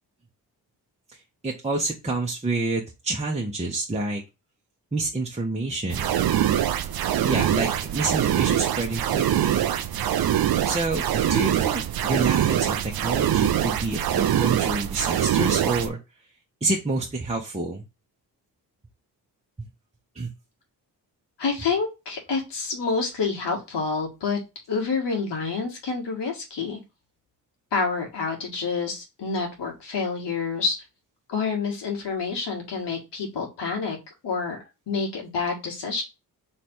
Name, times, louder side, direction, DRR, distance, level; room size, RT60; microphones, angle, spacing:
voice 1, 1.4-4.2 4.9-6.0 7.2-9.6 10.6-16.0 16.6-17.8 20.1-20.3, right 2 dB, 15° right, -2 dB, 1.0 m, -28 dB
sound 1, 5.9-15.9, right 11 dB, 55° right, 0.6 m, -23 dB
voice 2, 21.4-24.4 24.7-26.8 27.7-30.8 31.3-34.0 34.2-34.6 34.9-36.0, left 4 dB, 70° left, 1 dB, 1.7 m, -28 dB
3.4 x 3.2 x 4.3 m, 0.26 s
supercardioid pair, 55°, 43 cm